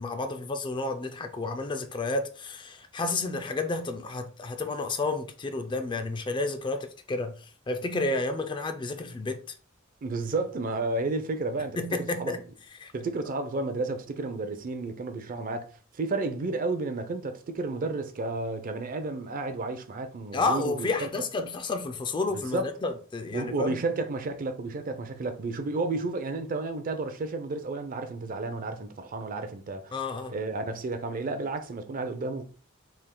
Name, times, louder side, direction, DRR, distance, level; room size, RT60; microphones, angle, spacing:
voice 1, 0.0-7.4 7.7-9.4 11.8-12.4 12.8-12.9 20.3-23.8 29.9-30.3, left 3 dB, 20° left, 0.3 m, -31 dB
voice 2, 10.0-12.4 12.9-21.1 22.5-22.7 23.3-29.9 30.3-32.4, right 3 dB, 40° right, 0.4 m, -32 dB
3.4 x 2.4 x 3.7 m
head